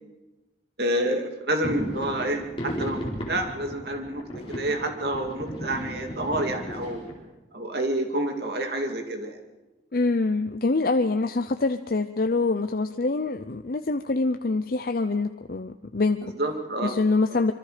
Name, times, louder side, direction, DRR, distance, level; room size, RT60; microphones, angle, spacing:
voice 1, 0.8-4.2 4.5-7.0 7.5-9.4 16.4-17.0 17.3-17.4, right 1 dB, 60° right, 4 dB, 2.5 m, -28 dB
sound 1, 1.6-7.1, equal, 30° left, 4.4 m, -35 dB
voice 2, 9.9-16.4 16.8-17.5, left 3 dB, 55° left, 7 dB, 0.6 m, -25 dB
26.0 x 24.0 x 5.1 m, 1.1 s
head